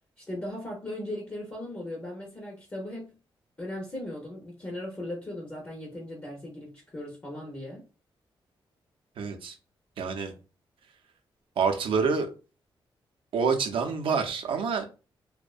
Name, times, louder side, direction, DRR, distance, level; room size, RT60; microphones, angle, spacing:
voice 1, 0.2-3.1 3.6-7.8, left 1 dB, 20° left, 0.5 m, -38 dB
voice 2, 9.2-9.6 10.0-10.3 11.6-12.3 13.3-14.9, right 5 dB, 75° right, 0.5 m, -27 dB
2.5 x 2.1 x 2.3 m
wide cardioid pair, 160°, 9 cm